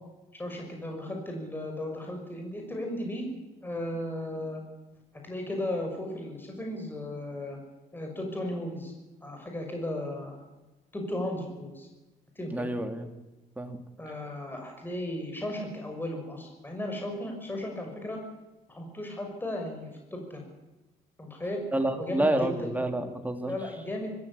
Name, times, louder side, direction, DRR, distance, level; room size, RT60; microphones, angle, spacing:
voice 1, 0.4-3.3 3.6-4.6 5.2-7.6 7.9-8.9 9.2-10.4 10.9-11.9 12.4-12.7 14.0-18.2 18.7-20.5 21.2-21.6 21.9-22.7 23.5-24.2, left 1 dB, 10° left, 2 dB, 5.9 m, -35 dB
voice 2, 12.5-13.1 13.6-13.8 21.7-23.6, right 1 dB, 10° right, 5 dB, 2.9 m, -29 dB
24.5 x 14.5 x 8.6 m, 1.1 s
cardioid pair, 110°, 17 cm